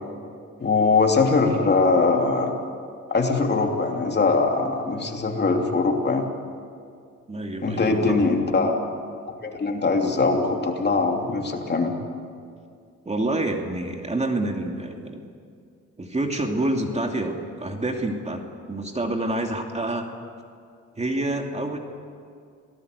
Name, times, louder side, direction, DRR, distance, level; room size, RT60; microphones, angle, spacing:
voice 1, 0.6-2.5 3.1-6.3 7.6-8.9 9.4-11.9, left 3 dB, 35° left, 2 dB, 3.1 m, -21 dB
voice 2, 7.3-8.3 13.0-15.3 16.0-20.1 21.0-21.8, right 2 dB, 20° right, 3 dB, 2.7 m, -27 dB
26.5 x 18.5 x 8.3 m, 2.3 s
cardioid pair, 90°, 30 cm